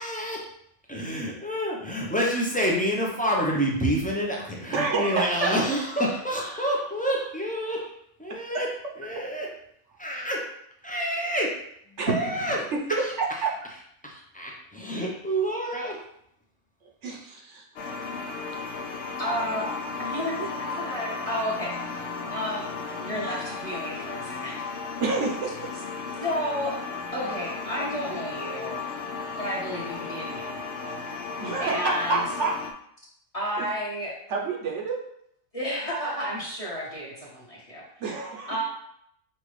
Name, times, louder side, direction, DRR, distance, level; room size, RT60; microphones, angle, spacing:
voice 1, 0.0-0.4 0.9-7.9 8.2-8.7 9.0-9.5 10.0-10.4 10.8-11.5 12.1-12.6 13.0-13.1 14.0-16.0, equal, 10° left, -3 dB, 0.5 m, -28 dB
voice 2, 4.7-5.5 8.5-8.6 9.1-9.2 11.9-12.5 12.9-13.5 17.0-17.6 25.0-25.7 31.4-32.5 33.6-33.7 34.3-35.0 38.0-38.5, right 4 dB, 60° right, -1 dB, 1.0 m, -28 dB
sound 1, 17.8-32.7, left 4 dB, 65° left, 0.8 m, -35 dB
voice 3, 19.2-24.6 26.2-26.8 27.1-28.9 29.4-30.6 31.6-32.2 33.3-34.1 35.5-37.8 38.5-38.6, equal, 25° left, -6 dB, 1.1 m, -32 dB
5.7 x 2.5 x 3.2 m, 0.72 s
omnidirectional pair, 1.4 m